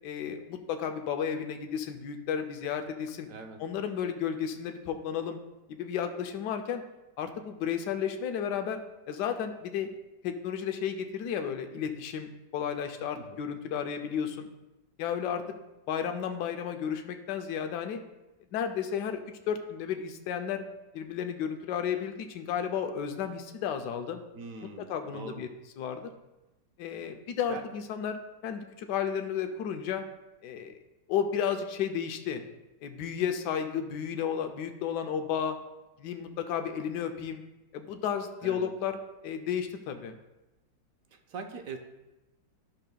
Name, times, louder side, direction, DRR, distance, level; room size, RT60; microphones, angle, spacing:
voice 1, 0.0-3.3 3.6-5.4 5.7-6.8 7.2-8.8 9.1-9.9 10.2-14.5 15.0-15.4 15.9-18.0 18.5-19.2 19.5-20.6 20.9-24.2 24.8-25.5 25.8-26.1 26.8-30.0 30.4-30.8 31.1-32.4 32.8-35.6 36.0-37.4 37.7-39.0 39.2-40.1, left 8 dB, 75° left, 6 dB, 1.2 m, -33 dB
voice 2, 3.3-3.6 13.3-13.4 24.3-25.4 27.5-27.6 38.4-38.7 41.1-41.8, right 4 dB, 60° right, 5 dB, 0.9 m, -42 dB
11.5 x 6.6 x 2.2 m, 1.0 s
omnidirectional pair, 2.0 m